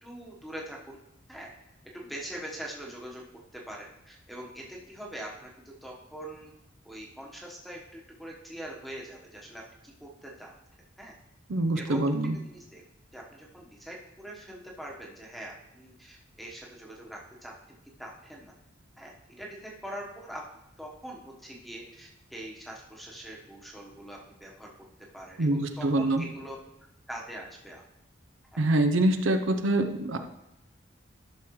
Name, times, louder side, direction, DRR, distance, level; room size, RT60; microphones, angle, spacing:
voice 1, 0.0-1.0 1.3-1.5 1.9-3.2 3.5-6.5 6.8-10.5 11.0-11.1 11.7-12.1 12.4-12.8 13.1-17.5 18.0-18.5 19.0-20.4 20.8-24.7 25.1-26.6 27.1-27.8 28.5-28.6, right 1 dB, ahead, -2 dB, 1.1 m, -43 dB
voice 2, 11.5-12.4 25.4-26.2 28.6-30.2, right 1 dB, 75° right, 7 dB, 0.6 m, -25 dB
13.0 x 6.2 x 3.1 m, 0.88 s
head